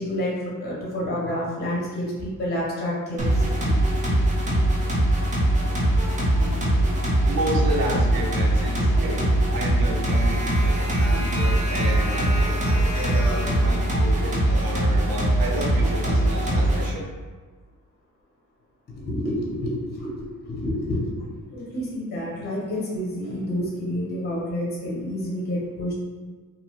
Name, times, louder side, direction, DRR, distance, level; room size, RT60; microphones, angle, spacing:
voice 1, 0.0-3.7 19.0-25.9, left 1 dB, 30° left, -4 dB, 0.5 m, -29 dB
sound 1, 3.2-16.9, right 1 dB, 25° right, 0.4 m, -21 dB
voice 2, 7.2-9.2 9.5-17.1, right 1 dB, 85° right, -1 dB, 0.7 m, -31 dB
2.5 x 2.1 x 2.8 m, 1.4 s
wide cardioid pair, 180°, 35 cm